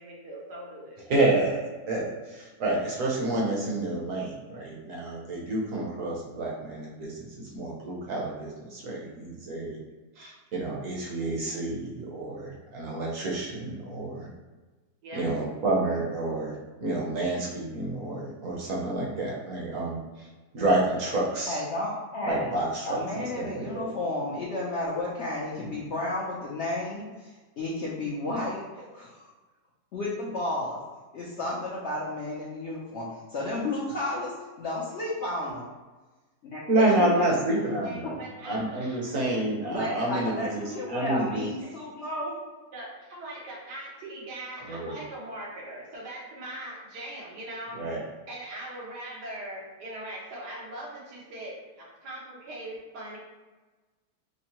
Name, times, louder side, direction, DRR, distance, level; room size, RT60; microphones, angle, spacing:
voice 1, 0.0-1.0 15.0-15.2 37.1-37.3 37.6-39.4 39.7-39.8 40.7-41.0 41.6-41.7 42.7-47.8 48.3-53.2, right 1 dB, 85° right, -4 dB, 1.6 m, -41 dB
voice 2, 1.1-9.8 10.2-14.3 15.1-16.5 16.8-20.3 20.5-21.6 22.2-23.9 25.6-25.7 36.7-38.2 38.4-40.6 40.9-41.4 44.6-45.0 47.7-48.0, right 2 dB, 60° right, -3 dB, 1.1 m, -29 dB
voice 3, 21.5-22.5 22.9-28.6 28.9-29.1 29.9-30.8 31.1-34.3 34.6-35.7 36.5-37.3 39.7-42.4, left 2 dB, 65° left, -6 dB, 0.7 m, -32 dB
5.3 x 2.0 x 2.9 m, 1.2 s
omnidirectional pair, 1.7 m